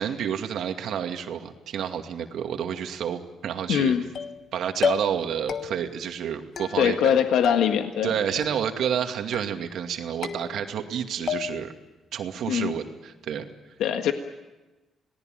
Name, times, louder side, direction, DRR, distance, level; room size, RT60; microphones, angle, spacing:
voice 1, 0.0-3.9 4.5-7.1 8.0-11.7 12.1-13.5, right 8 dB, 75° right, 5 dB, 2.3 m, -29 dB
voice 2, 3.7-4.1 6.8-8.1 12.5-12.7 13.8-14.1, left 9 dB, 80° left, 6 dB, 1.6 m, -22 dB
sound 1, 4.1-4.5 4.8-5.2 5.5-6.0 6.6-7.2 7.4-8.1 8.4-8.9 9.3-9.8 10.2-10.9 11.3-11.8, left 7 dB, 60° left, 1.2 m, -32 dB
27.5 x 18.5 x 9.2 m, 1.1 s
cardioid pair, 90°, 0 cm